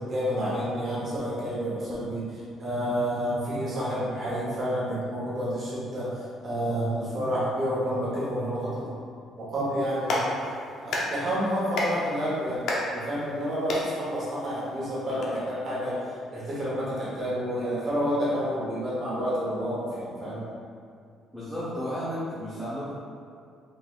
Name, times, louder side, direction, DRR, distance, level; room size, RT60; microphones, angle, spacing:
voice 1, 0.0-8.9 9.4-12.6 12.9-20.5, equal, 40° right, -8 dB, 1.0 m, -29 dB
Clapping, 9.8-15.3, left 1 dB, 60° left, 0.7 m, -33 dB
voice 2, 21.3-22.9, equal, 5° left, -12 dB, 0.8 m, -33 dB
3.8 x 3.7 x 2.4 m, 2.3 s
cardioid pair, 145°, 0 cm